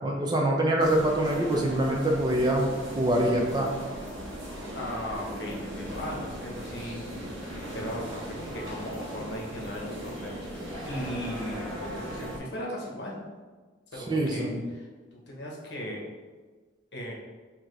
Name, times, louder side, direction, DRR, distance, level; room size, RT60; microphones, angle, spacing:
voice 1, 0.0-2.7 3.0-3.7 14.1-14.6, right 1 dB, 20° right, -1 dB, 0.5 m, -25 dB
sound 1, 0.8-12.4, equal, 90° right, 1.1 m, -38 dB
voice 2, 4.7-7.1 7.7-13.2 13.9-16.0 16.9-17.1, equal, 60° left, -2 dB, 0.9 m, -38 dB
4.4 x 2.8 x 3.1 m, 1.4 s
head